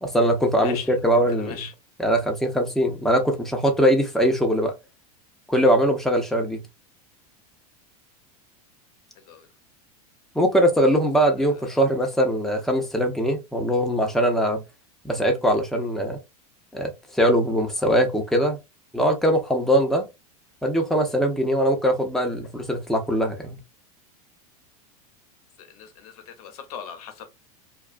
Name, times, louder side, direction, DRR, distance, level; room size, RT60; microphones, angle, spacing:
voice 1, 0.0-1.7 2.0-4.7 5.5-6.6 10.3-14.6 15.0-16.2 16.7-18.6 18.9-20.1 20.6-23.6, equal, ahead, 0.7 m, -21 dB
voice 2, 0.6-1.7 9.2-9.5 11.4-11.8 25.6-27.3, left 8 dB, 70° left, 0.8 m, -39 dB
2.3 x 2.3 x 2.4 m
hypercardioid pair, 110°, 20 cm